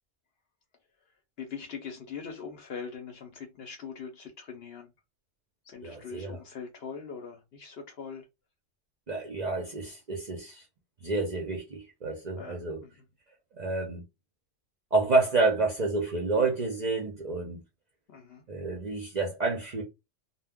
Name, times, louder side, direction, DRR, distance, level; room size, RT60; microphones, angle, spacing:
voice 1, 1.4-4.9 5.7-8.2 12.3-12.9 18.1-18.4, left 6 dB, 60° left, 0.7 m, -42 dB
voice 2, 5.8-6.4 9.1-10.6 11.0-12.8 13.5-14.0 14.9-17.6 18.5-19.8, right 3 dB, 50° right, 0.5 m, -29 dB
2.1 x 2.1 x 3.4 m
omnidirectional pair, 1.4 m